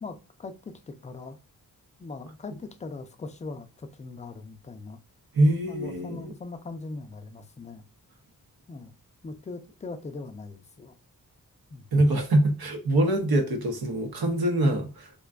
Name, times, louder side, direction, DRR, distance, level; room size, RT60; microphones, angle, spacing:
voice 1, 0.0-1.4 2.0-5.0 5.7-7.8 8.7-8.9 9.2-10.9 11.7-11.9 14.6-14.9, left 3 dB, 20° left, 0.3 m, -40 dB
voice 2, 5.3-6.3 11.9-15.2, right 1 dB, 90° right, 0.7 m, -24 dB
2.5 x 2.2 x 2.2 m
wide cardioid pair, 70°, 36 cm